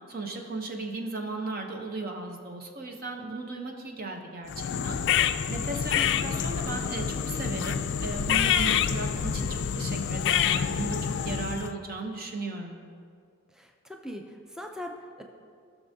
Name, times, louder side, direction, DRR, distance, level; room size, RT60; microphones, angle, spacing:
voice 1, 0.1-5.0 5.5-12.8, right 2 dB, 45° right, 2 dB, 0.8 m, -36 dB
sound 1, 4.5-11.7, left 8 dB, 55° left, 0.3 m, -27 dB
voice 2, 13.5-15.2, left 1 dB, 5° right, 3 dB, 0.5 m, -41 dB
17.5 x 6.1 x 2.7 m, 2.2 s
head